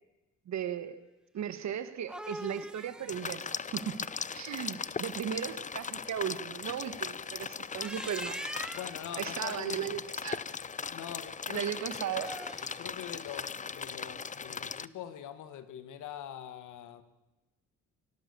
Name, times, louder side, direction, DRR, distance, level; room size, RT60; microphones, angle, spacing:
voice 1, 0.5-1.0 1.3-4.0 4.3-8.4 9.2-10.4 11.5-12.3, right 9 dB, 65° right, 12 dB, 1.8 m, -36 dB
sound 1, 1.8-4.9 7.6-9.1 12.1-13.0, right 1 dB, 5° right, 1.1 m, -44 dB
sound 2, 3.1-14.9, left 6 dB, 25° left, 0.6 m, -39 dB
voice 2, 8.7-10.0 10.9-11.7 12.1-12.2 12.8-17.0, left 10 dB, 80° left, 12 dB, 1.9 m, -43 dB
25.0 x 16.5 x 7.1 m, 1.0 s
cardioid pair, 90°, 30 cm